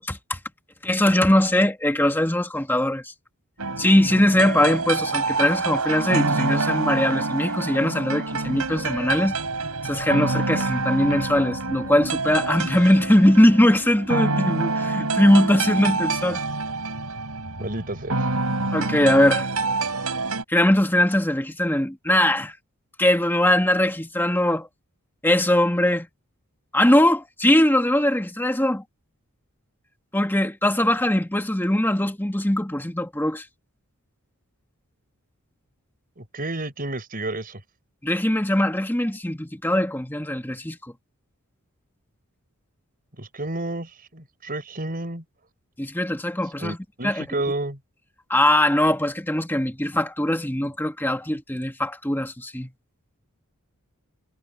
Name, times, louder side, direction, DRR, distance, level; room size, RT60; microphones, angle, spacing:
voice 1, 0.1-0.4 0.8-3.1 3.8-9.3 9.8-16.4 18.7-19.5 20.5-22.5 23.0-24.7 25.2-26.1 26.7-28.8 30.1-33.5 38.0-40.9 45.8-46.8 47.0-47.3 48.3-52.7, left 1 dB, 10° left, 1.8 m, -21 dB
sound 1, 3.6-20.4, right 3 dB, 90° right, 4.9 m, -27 dB
voice 2, 17.6-18.3 36.2-37.6 43.2-45.2 46.6-47.8, right 2 dB, 40° right, 6.5 m, -31 dB
head